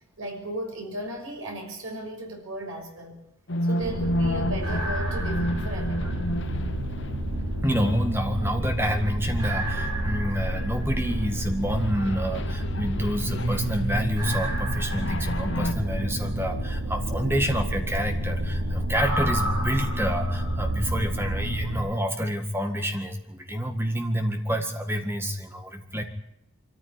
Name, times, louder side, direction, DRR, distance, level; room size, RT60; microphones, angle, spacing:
voice 1, 0.2-3.2 3.6-6.2, right 1 dB, 70° right, 2 dB, 6.1 m, -35 dB
sound 1, 3.5-8.3 8.7-10.2 10.6-10.7 11.1-14.6 14.9-15.7, left 1 dB, 55° left, 1.1 m, -32 dB
sound 2, 3.8-21.8, right 1 dB, 90° right, 4.7 m, -29 dB
voice 2, 7.6-26.0, equal, 10° right, 5 dB, 1.8 m, -28 dB
23.5 x 14.0 x 9.9 m, 0.84 s
head